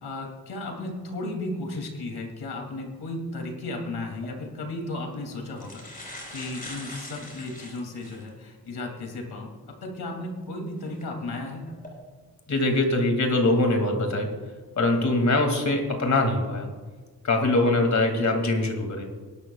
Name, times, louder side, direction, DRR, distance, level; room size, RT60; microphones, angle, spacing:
voice 1, 0.0-11.7, left 2 dB, 85° left, 2 dB, 2.8 m, -35 dB
sound 1, 4.1-4.3 5.1-5.2 5.5-8.3 8.9-9.0 10.8-11.0 11.6-11.9, left 1 dB, 20° left, 4.2 m, -42 dB
voice 2, 12.5-14.3 14.8-16.7 17.2-19.0, left 2 dB, 45° left, 3 dB, 2.5 m, -23 dB
21.0 x 12.0 x 2.4 m, 1.4 s
wide cardioid pair, 105°, 38 cm